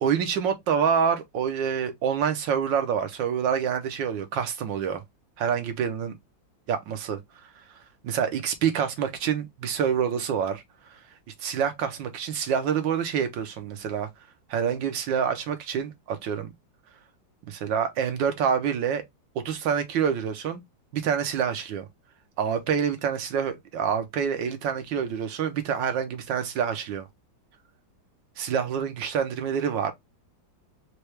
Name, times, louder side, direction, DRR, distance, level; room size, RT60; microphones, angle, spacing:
voice 1, 0.0-5.0 5.4-6.2 6.7-7.2 8.0-10.6 11.4-14.1 14.5-16.5 17.5-19.0 19.3-20.6 20.9-21.9 22.4-27.1 28.4-29.9, right 7 dB, 75° right, 1.5 m, -27 dB
4.5 x 2.3 x 3.1 m
omnidirectional pair, 2.1 m